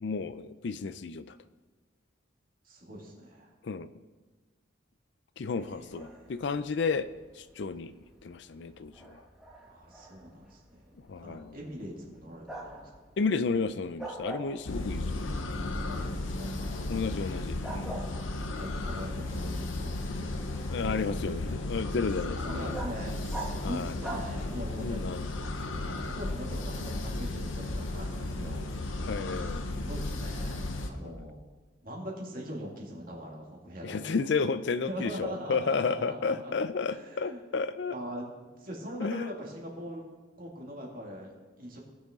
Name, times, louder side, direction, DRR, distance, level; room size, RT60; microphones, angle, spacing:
voice 1, 0.0-1.4 3.6-3.9 5.4-7.1 7.3-7.9 8.2-9.2 11.1-11.6 13.2-15.3 16.9-17.9 20.7-22.8 23.6-23.9 24.8-25.3 29.0-29.7 30.9-31.3 33.8-37.9 39.0-39.3, left 4 dB, 65° left, 13 dB, 0.4 m, -32 dB
voice 2, 2.6-3.5 5.7-6.3 9.6-10.9 11.2-12.9 15.7-17.3 18.6-21.6 22.3-25.1 25.8-28.6 29.7-31.4 31.8-34.3 34.9-36.5 36.9-37.4 37.9-40.0 40.4-41.3 41.6-41.8, equal, 45° right, -1 dB, 2.2 m, -42 dB
Bark, 5.6-24.9, right 2 dB, 5° right, 1.4 m, -47 dB
sound 1, 14.7-30.9, left 2 dB, 90° left, 0.9 m, -34 dB
18.5 x 6.4 x 3.7 m, 1.3 s
head